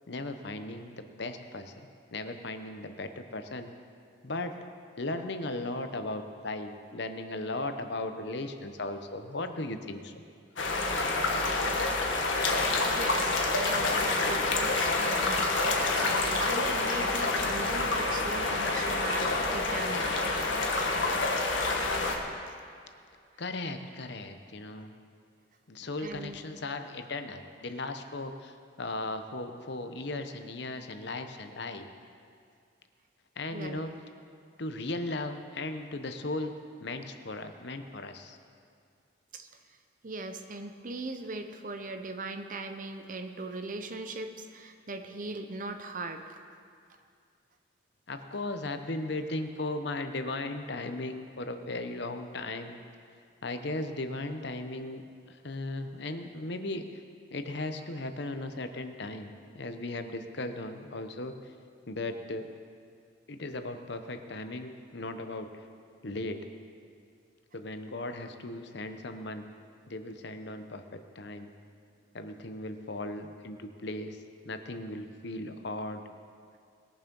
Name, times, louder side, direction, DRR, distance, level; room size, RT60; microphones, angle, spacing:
voice 1, 0.1-1.7 2.1-3.7 4.2-4.7 5.0-10.1 23.4-25.0 25.7-31.9 33.4-33.9 34.6-36.5 36.8-38.4 48.1-52.8 53.4-56.9 57.3-61.3 61.9-62.5 63.3-65.5 66.0-66.5 67.5-69.5 69.9-71.5 72.1-76.0, left 2 dB, 60° left, 7 dB, 0.9 m, -37 dB
sound 1, 10.6-22.2, left 3 dB, 75° left, 1.5 m, -28 dB
voice 2, 12.9-20.2 21.1-21.2 26.0-26.4 33.5-33.8 39.3-39.5 40.0-46.4, right 2 dB, 40° right, 6 dB, 0.7 m, -39 dB
20.5 x 7.2 x 5.4 m, 2.3 s
head